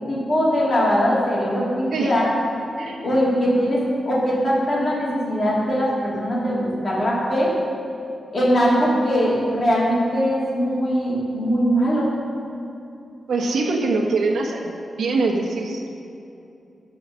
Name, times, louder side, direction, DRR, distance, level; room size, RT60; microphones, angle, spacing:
voice 1, 0.1-2.3 3.0-7.5 8.3-12.1, equal, 30° left, -6 dB, 2.9 m, -21 dB
voice 2, 13.3-14.7 15.0-15.9, right 3 dB, 80° right, 1 dB, 1.2 m, -23 dB
15.0 x 5.1 x 6.6 m, 2.7 s
wide cardioid pair, 170°, 0 cm